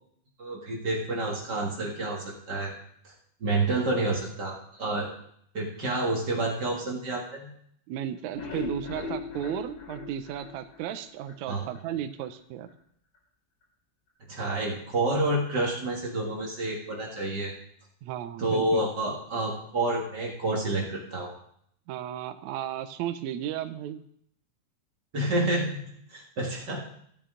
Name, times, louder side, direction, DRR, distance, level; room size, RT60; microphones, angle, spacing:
voice 1, 0.4-2.7 3.0-3.1 3.4-5.1 5.5-7.5 11.5-11.7 14.3-17.5 18.4-21.3 25.1-25.8 26.1-26.8, right 2 dB, 40° right, -2 dB, 1.7 m, -29 dB
voice 2, 7.9-12.7 18.0-18.9 21.9-24.0, right 10 dB, 75° right, 8 dB, 1.7 m, -34 dB
sound 1, 8.2-11.4 11.8-11.9 12.2-12.3 12.7-12.8, left 4 dB, 45° left, 4.3 m, -38 dB
16.0 x 8.1 x 3.8 m, 0.68 s
omnidirectional pair, 4.0 m